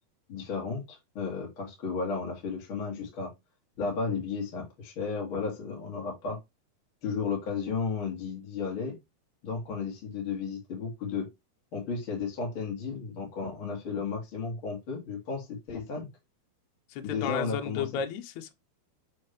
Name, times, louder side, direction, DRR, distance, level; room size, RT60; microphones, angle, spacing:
voice 1, 0.3-3.3 3.8-6.4 7.0-9.0 9.4-11.3 11.7-16.1 17.0-17.9, left 5 dB, 35° left, 2.8 m, -33 dB
voice 2, 16.9-18.5, left 7 dB, 85° left, 1.6 m, -33 dB
7.9 x 3.7 x 3.2 m
omnidirectional pair, 4.6 m